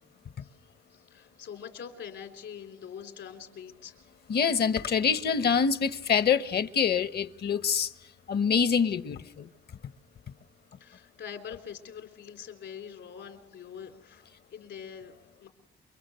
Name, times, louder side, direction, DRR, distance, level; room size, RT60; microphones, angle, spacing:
voice 1, 0.9-3.9 10.8-14.2 14.5-15.1 15.4-15.5, left 8 dB, 70° left, 3.5 m, -44 dB
voice 2, 4.3-7.9 8.3-9.5, left 6 dB, 55° left, 1.1 m, -25 dB
28.5 x 24.0 x 6.9 m
cardioid pair, 90°, 20 cm